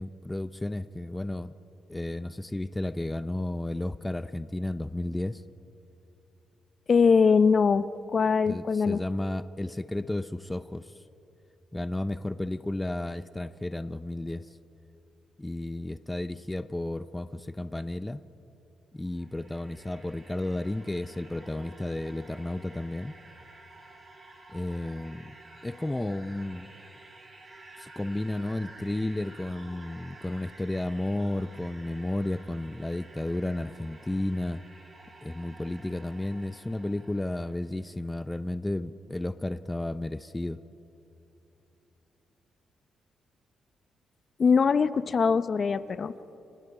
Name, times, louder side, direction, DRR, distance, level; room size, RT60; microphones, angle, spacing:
voice 1, 0.0-1.5 1.9-5.4 8.5-11.0 11.7-14.6 15.4-18.2 18.9-23.1 24.5-25.4 25.6-26.7 27.8-34.6 35.2-40.6, left 1 dB, 10° left, 12 dB, 0.5 m, -33 dB
voice 2, 6.9-9.0 44.4-46.1, left 5 dB, 45° left, 13 dB, 0.7 m, -22 dB
sound 1, 19.0-37.6, right 2 dB, 30° right, 4.1 m, -51 dB
29.5 x 25.5 x 4.9 m, 3.0 s
cardioid pair, 100°, 0 cm